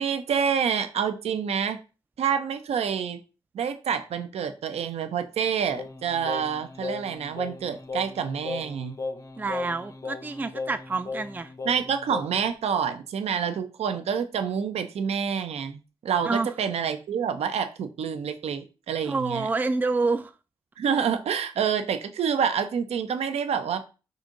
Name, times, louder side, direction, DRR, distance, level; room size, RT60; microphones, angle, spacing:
voice 1, 0.0-1.8 2.2-3.2 3.5-8.9 11.6-19.5 20.8-23.8, right 7 dB, 85° right, 0.5 m, -27 dB
Singing, 5.7-12.5, left 3 dB, 30° left, 0.7 m, -37 dB
voice 2, 9.4-11.5 16.2-16.5 19.1-20.3, right 3 dB, 15° right, 0.3 m, -28 dB
5.0 x 2.6 x 3.8 m
cardioid pair, 55°, 10 cm